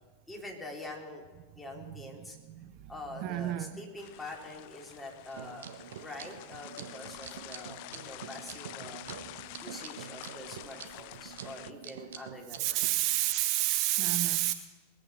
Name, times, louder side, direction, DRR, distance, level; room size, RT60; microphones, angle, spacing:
voice 1, 0.3-1.2 1.5-2.4 2.9-5.7 6.0-9.0 9.6-12.9, left 2 dB, 10° left, -1 dB, 3.2 m, -45 dB
voice 2, 2.6-3.7 12.6-14.5, right 16 dB, 40° right, 11 dB, 0.5 m, -29 dB
sound 1, 4.0-11.7, left 17 dB, 45° left, 0.4 m, -48 dB
sound 2, 5.3-12.9, right 8 dB, 60° right, 0.9 m, -46 dB
20.5 x 8.5 x 6.2 m, 1.3 s
figure-of-eight pair, 90°, 0 cm